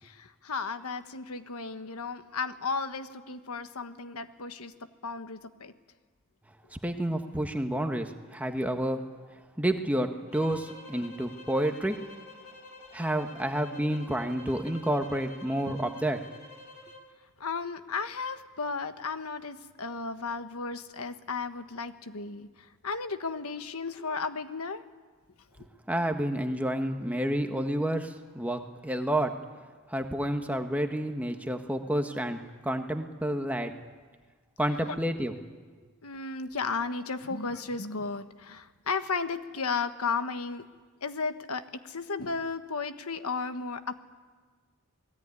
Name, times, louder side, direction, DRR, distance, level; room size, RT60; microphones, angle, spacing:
voice 1, 0.0-4.7 5.0-5.7 17.4-22.5 22.8-24.8 36.0-40.6 41.0-44.0, left 4 dB, 85° left, 9 dB, 1.3 m, -34 dB
voice 2, 6.7-9.1 9.6-12.0 12.9-16.2 25.9-29.3 29.9-33.8 34.6-35.3, right 1 dB, 5° right, 5 dB, 1.4 m, -30 dB
sound 1, 10.3-17.1, left 2 dB, 65° left, 3.5 m, -49 dB
28.0 x 19.5 x 9.8 m, 1.4 s
head